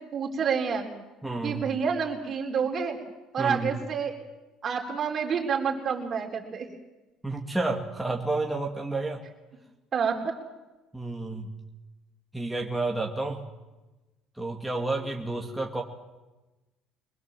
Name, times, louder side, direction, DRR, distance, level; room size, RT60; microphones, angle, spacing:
voice 1, 0.1-0.9 1.4-3.0 3.3-4.1 4.6-6.7 9.9-10.4, right 6 dB, 40° right, 1 dB, 4.3 m, -28 dB
voice 2, 1.2-1.7 3.4-3.8 7.2-9.2 10.9-11.5 12.3-13.4 14.4-15.8, right 2 dB, 5° right, 0 dB, 2.1 m, -30 dB
23.5 x 20.5 x 7.6 m, 1.1 s
cardioid pair, 120°, 0 cm